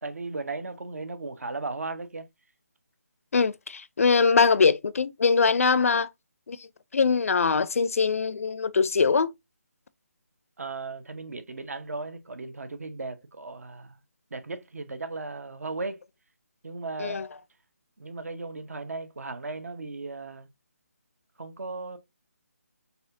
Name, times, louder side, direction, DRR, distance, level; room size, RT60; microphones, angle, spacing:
voice 1, 0.0-2.3 10.6-14.0 14.3-16.0 16.6-17.2 18.0-20.5 21.4-22.0, right 3 dB, 70° right, 0.9 m, -36 dB
voice 2, 3.3-6.1 6.5-6.6 6.9-9.3 17.0-17.3, left 5 dB, 65° left, 0.4 m, -22 dB
4.2 x 3.4 x 2.5 m
figure-of-eight pair, 160°, 8 cm